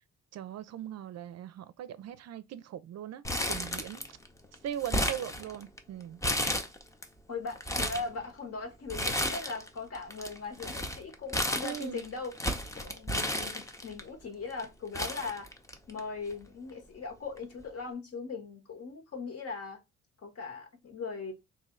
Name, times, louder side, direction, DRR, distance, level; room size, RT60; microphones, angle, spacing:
voice 1, 0.3-4.0 4.6-6.2 11.6-12.0, right 10 dB, 60° right, 0.5 m, -40 dB
Crumpling crinkling, 3.2-4.3 4.5-5.8 6.2-7.0 7.5-8.1 8.9-9.7 9.9-14.0 14.6-14.7 14.9-16.0 16.3-16.4 17.4-17.6, left 1 dB, 10° left, 0.6 m, -32 dB
voice 2, 7.3-12.3 12.7-15.5 15.9-19.8 20.2-21.3, left 4 dB, 50° left, 1.4 m, -39 dB
3.1 x 2.7 x 3.7 m
cardioid pair, 90°, 30 cm